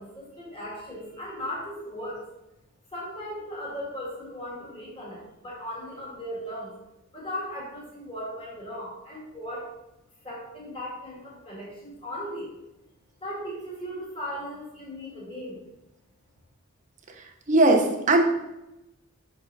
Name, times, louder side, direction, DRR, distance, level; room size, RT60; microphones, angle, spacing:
voice 1, 0.0-2.2 2.9-6.7 7.1-9.7 10.2-12.5 13.2-15.6, equal, 25° left, -5 dB, 1.8 m, -37 dB
voice 2, 17.5-18.2, right 2 dB, 35° right, 2 dB, 0.8 m, -19 dB
5.4 x 5.2 x 4.0 m, 0.93 s
head